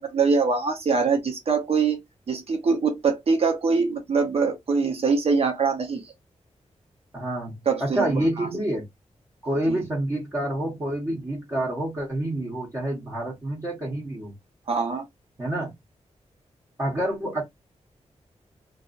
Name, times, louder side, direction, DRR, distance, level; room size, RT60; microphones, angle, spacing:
voice 1, 0.0-2.0 2.3-6.0 7.7-8.5 9.7-9.8 14.7-15.0, right 4 dB, 55° right, 0.9 m, -23 dB
voice 2, 7.1-8.8 9.4-14.3 15.4-15.7 16.8-17.4, right 1 dB, 25° right, 1.1 m, -28 dB
2.6 x 2.5 x 2.5 m
wide cardioid pair, 160°, 12 cm